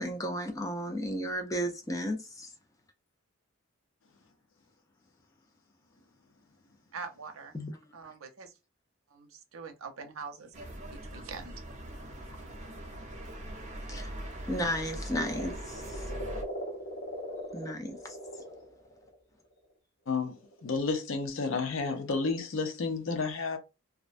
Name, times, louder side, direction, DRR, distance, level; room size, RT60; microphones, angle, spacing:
voice 1, 0.0-2.5 7.5-7.7 13.9-14.1 14.5-16.2 17.5-18.2, equal, 15° left, 0.4 m, -34 dB
voice 2, 6.9-7.5 7.9-8.5 9.1-10.6 10.9-11.5, right 5 dB, 85° right, 0.6 m, -43 dB
sound 1, 10.5-16.4, right 1 dB, 35° right, 0.6 m, -41 dB
sound 2, 15.1-19.1 20.3-20.7, equal, 50° left, 1.2 m, -39 dB
voice 3, 20.6-23.6, left 4 dB, 70° left, 0.6 m, -31 dB
2.4 x 2.1 x 2.4 m
head